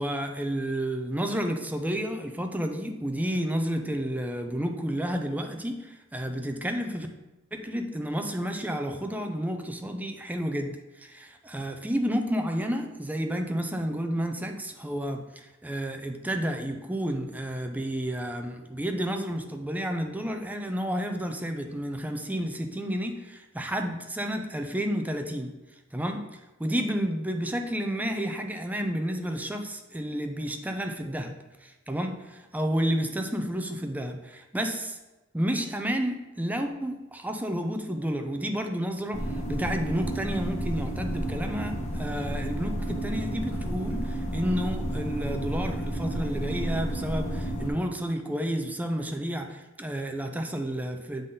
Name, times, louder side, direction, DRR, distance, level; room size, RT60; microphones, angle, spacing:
voice 1, 0.0-7.1 7.5-25.5 25.9-31.3 31.6-35.0 35.3-51.3, equal, 10° right, 5 dB, 0.5 m, -31 dB
sound 1, 39.1-47.7, right 1 dB, 35° left, 1.2 m, -31 dB
7.9 x 3.8 x 3.9 m, 1.0 s
head